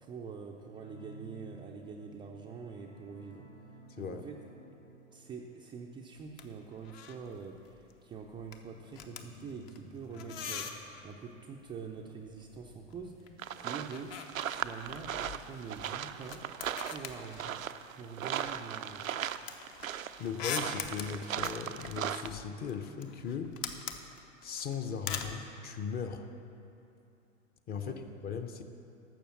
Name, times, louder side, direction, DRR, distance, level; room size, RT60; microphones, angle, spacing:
voice 1, 0.0-3.5 4.0-4.4 5.1-14.2 14.5-16.5 16.8-17.6 17.9-19.1 27.7-28.0, right 5 dB, 10° right, 0 dB, 0.4 m, -45 dB
sound 1, 0.7-14.0 14.3-14.5 14.8-14.9, equal, 70° left, 2.0 m, -57 dB
sound 2, 6.2-6.5 6.7-7.3 7.6-7.9 8.2-11.1 12.3-13.3 13.6-17.9 18.3-25.4, left 7 dB, 45° left, 1.0 m, -43 dB
sound 3, 13.4-22.3, right 9 dB, 85° right, 0.5 m, -38 dB
voice 2, 20.2-23.5 24.4-26.3 27.7-28.6, left 6 dB, 25° left, 7 dB, 0.7 m, -38 dB
12.0 x 6.9 x 7.3 m, 2.7 s
figure-of-eight pair, 95°, 39 cm